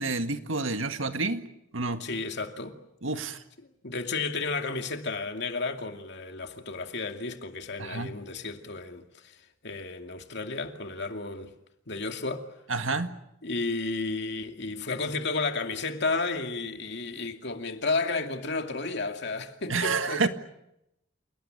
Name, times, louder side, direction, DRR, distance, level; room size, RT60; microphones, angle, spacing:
voice 1, 0.0-1.4 1.7-2.0 3.0-3.4 7.8-8.1 12.7-13.1 19.7-20.3, right 3 dB, 80° right, 1.9 m, -29 dB
voice 2, 2.0-2.8 3.8-9.4 9.6-11.5 11.9-12.4 13.4-20.3, left 3 dB, 60° left, 2.5 m, -32 dB
28.5 x 19.0 x 9.0 m
head